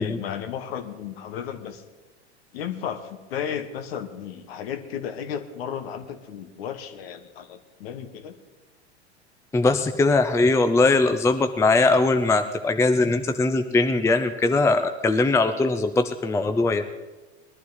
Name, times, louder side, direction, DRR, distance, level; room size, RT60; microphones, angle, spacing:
voice 1, 0.0-1.8 2.5-8.4, left 8 dB, 60° left, 10 dB, 1.3 m, -34 dB
voice 2, 9.5-16.8, left 3 dB, 10° left, 9 dB, 0.6 m, -21 dB
20.5 x 12.0 x 4.0 m, 1.2 s
figure-of-eight pair, 85°, 34 cm